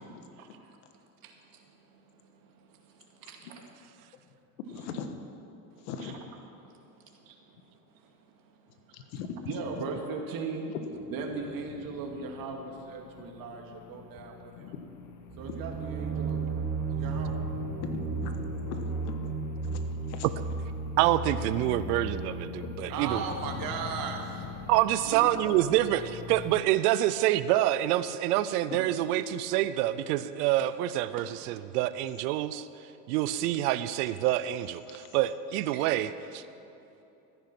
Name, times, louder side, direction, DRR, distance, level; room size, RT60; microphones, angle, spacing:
voice 1, 1.2-3.7 4.0-4.1 4.8-4.9 5.7-6.1 6.6-9.1 9.5-10.7 11.1-14.7 15.4-16.6 16.9-17.5 22.9-24.5 25.0-25.4 28.9-29.0 31.2-31.3 35.7-35.9, right 5 dB, 45° right, 2 dB, 2.2 m, -39 dB
voice 2, 4.6-5.1 5.8-6.2 8.9-9.5 13.9-14.3 14.6-15.0 17.8-18.4 18.7-19.3 19.6-19.8 20.1-20.3 28.7-28.8 34.9-35.0, left 6 dB, 70° left, 7 dB, 1.5 m, -40 dB
sound 1, 10.9-26.6, left 7 dB, 40° left, 1.1 m, -45 dB
sound 2, 15.3-23.0, right 4 dB, 25° right, 1.2 m, -34 dB
voice 3, 21.0-23.2 24.7-32.7 33.1-36.4, right 14 dB, 75° right, 14 dB, 0.7 m, -27 dB
14.0 x 10.5 x 6.0 m, 2.8 s
supercardioid pair, 105°, 47 cm